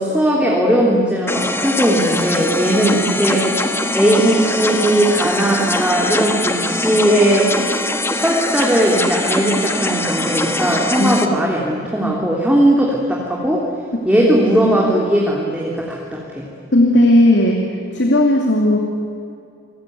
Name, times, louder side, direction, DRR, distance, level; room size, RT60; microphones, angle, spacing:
voice 1, 0.0-3.5 3.9-7.5 8.1-13.7 14.0-16.5, right 1 dB, 5° right, -3 dB, 3.2 m, -18 dB
sound 1, 1.3-11.3, left 2 dB, 10° left, 1.3 m, -22 dB
voice 2, 16.7-17.6 17.9-18.8, left 1 dB, 60° left, 1 dB, 2.8 m, -14 dB
29.0 x 21.5 x 9.4 m, 2.5 s
head